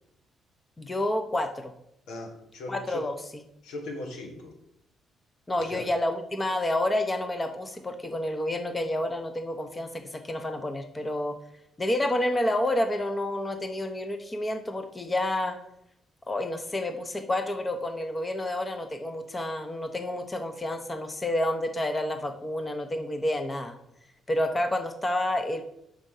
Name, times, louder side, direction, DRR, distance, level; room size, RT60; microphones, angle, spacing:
voice 1, 0.8-1.7 2.7-3.1 5.5-11.4 11.8-15.6 16.3-23.8 24.3-25.6, left 1 dB, 20° left, 7 dB, 0.8 m, -29 dB
voice 2, 2.1-3.1 3.6-4.5 5.6-5.9, left 2 dB, 90° left, 2 dB, 1.6 m, -38 dB
5.5 x 5.1 x 6.5 m, 0.80 s
cardioid pair, 85°, 0 cm